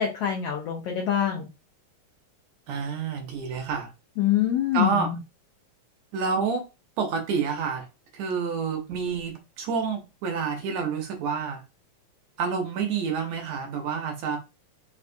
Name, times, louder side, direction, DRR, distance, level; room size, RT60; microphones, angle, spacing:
voice 1, 0.0-1.5 4.2-5.2, left 10 dB, 75° left, 1.4 m, -25 dB
voice 2, 2.7-3.9 4.7-5.1 6.1-6.6 7.0-7.9 8.1-11.6 12.4-14.4, right 5 dB, 75° right, 1.9 m, -28 dB
4.9 x 2.3 x 2.5 m
omnidirectional pair, 3.3 m